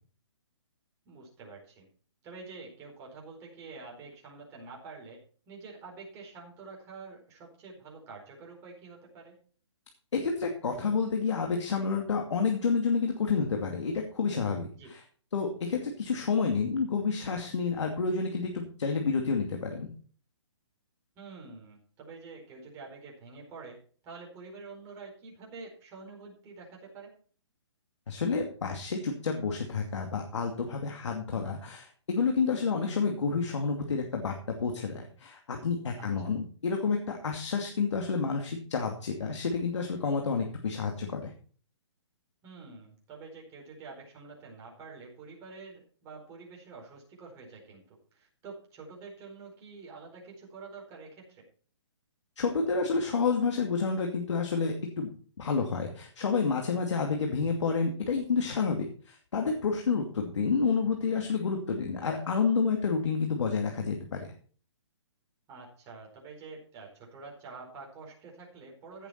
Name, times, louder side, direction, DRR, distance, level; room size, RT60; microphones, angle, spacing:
voice 1, 1.0-1.9 2.2-9.4 14.7-14.9 21.2-27.1 36.0-36.3 42.4-51.4 57.0-57.1 65.5-69.1, right 4 dB, 20° right, -2 dB, 4.6 m, -47 dB
voice 2, 10.1-15.0 15.3-19.9 28.1-41.3 52.4-55.1 55.4-64.3, left 5 dB, 70° left, 2 dB, 2.5 m, -29 dB
16.0 x 7.1 x 4.4 m, 0.43 s
hypercardioid pair, 160°, 16 cm